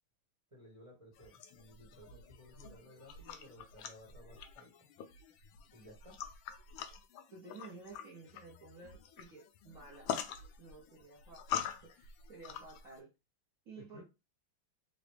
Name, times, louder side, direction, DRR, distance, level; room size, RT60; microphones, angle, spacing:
voice 1, 0.5-4.9 5.7-6.2 13.7-14.0, equal, 20° right, 1.0 m, -57 dB
sound 1, 1.1-13.0, left 9 dB, 75° left, 1.2 m, -45 dB
voice 2, 7.3-13.1 13.6-14.0, right 3 dB, 55° right, 1.1 m, -54 dB
3.9 x 2.2 x 3.3 m
omnidirectional pair, 2.3 m